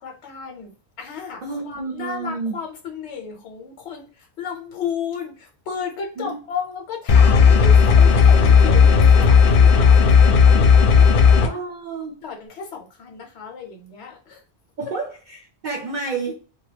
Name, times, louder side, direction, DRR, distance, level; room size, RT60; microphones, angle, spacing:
voice 1, 0.0-11.6 12.2-14.4, left 6 dB, 90° left, 0.9 m, -33 dB
voice 2, 1.4-2.6 6.2-6.4 11.4-12.2 14.8-16.3, right 4 dB, 55° right, 0.6 m, -30 dB
sound 1, 7.1-11.5, left 6 dB, 60° left, 0.6 m, -13 dB
2.7 x 2.2 x 3.3 m
omnidirectional pair, 1.1 m